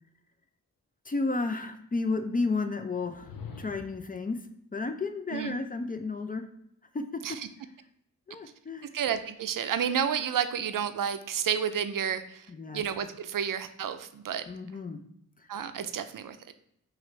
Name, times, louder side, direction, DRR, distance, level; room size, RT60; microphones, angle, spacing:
voice 1, 1.0-4.4 4.7-6.5 6.9-7.2 8.3-8.9 12.5-12.8 14.5-15.0 15.4-15.5, left 3 dB, 25° left, 7 dB, 0.4 m, -32 dB
sound 1, 3.0-4.2, left 5 dB, 85° left, 0.6 m, -44 dB
voice 2, 8.9-12.5 12.7-14.4 15.5-16.4, right 8 dB, 75° right, 10 dB, 0.5 m, -30 dB
6.0 x 2.5 x 3.2 m, 0.74 s
wide cardioid pair, 95°, 33 cm